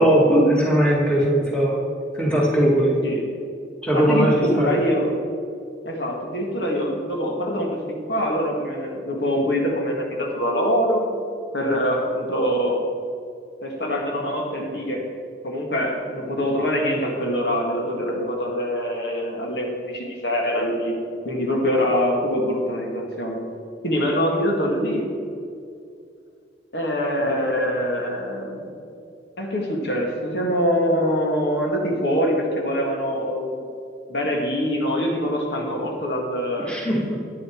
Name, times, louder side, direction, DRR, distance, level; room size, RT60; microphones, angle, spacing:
voice 1, 0.0-1.8 2.1-2.9 3.8-4.7 36.7-37.2, right 1 dB, 5° left, -3 dB, 2.0 m, -19 dB
voice 2, 3.9-5.2 5.8-7.8 8.1-11.1 11.5-12.8 13.6-15.1 15.4-21.0 21.2-23.5 23.8-25.1 26.7-28.7 29.4-33.6 34.1-36.8, equal, 70° left, 0 dB, 2.0 m, -24 dB
11.0 x 9.5 x 4.6 m, 2.5 s
head